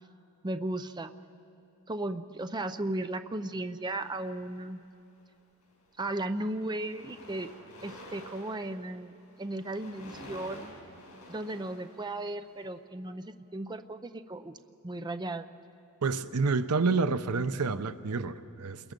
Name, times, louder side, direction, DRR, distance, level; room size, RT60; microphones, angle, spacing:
voice 1, 0.4-1.1 1.9-4.8 6.0-7.5 7.8-9.1 9.4-10.7 11.3-14.6 14.8-15.5, right 1 dB, 20° right, 9 dB, 0.5 m, -35 dB
sound 1, 3.9-4.9 5.6-5.8 6.1-12.6, left 1 dB, 80° left, 6.0 m, -50 dB
voice 2, 16.0-18.9, right 4 dB, 85° right, 12 dB, 0.7 m, -29 dB
29.5 x 21.5 x 5.3 m, 2.6 s
head